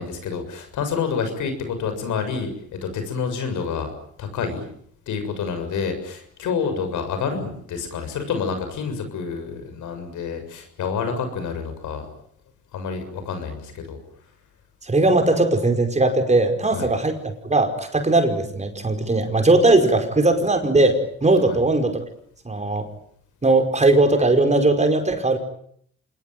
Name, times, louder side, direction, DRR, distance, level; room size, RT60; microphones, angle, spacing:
voice 1, 0.0-3.9 4.2-4.6 5.1-12.1 12.7-14.0 16.7-16.9 21.5-21.6, left 5 dB, 80° left, 8 dB, 6.9 m, -28 dB
voice 2, 14.8-17.2 17.4-22.0 22.4-22.9 23.4-25.4, right 2 dB, 25° right, 6 dB, 5.1 m, -19 dB
26.5 x 20.5 x 9.3 m, 0.66 s
cardioid pair, 90°, 30 cm